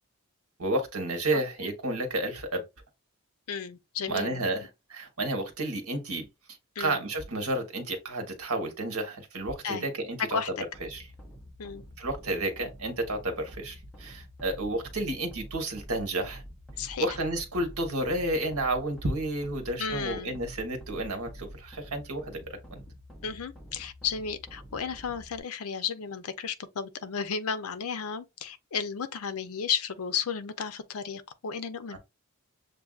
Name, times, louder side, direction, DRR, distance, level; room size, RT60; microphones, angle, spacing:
voice 1, 0.6-2.7 4.1-6.3 6.8-10.5 10.9-11.1 12.0-16.4 17.0-22.8 31.9-32.0, right 1 dB, 75° right, 1.2 m, -31 dB
voice 2, 3.5-4.4 6.8-7.0 9.6-9.9 10.3-10.5 11.6-11.8 16.8-17.1 19.8-20.4 23.2-32.0, left 6 dB, 80° left, 0.6 m, -33 dB
sound 1, 10.7-25.4, equal, 5° left, 0.8 m, -47 dB
6.7 x 2.6 x 2.4 m
head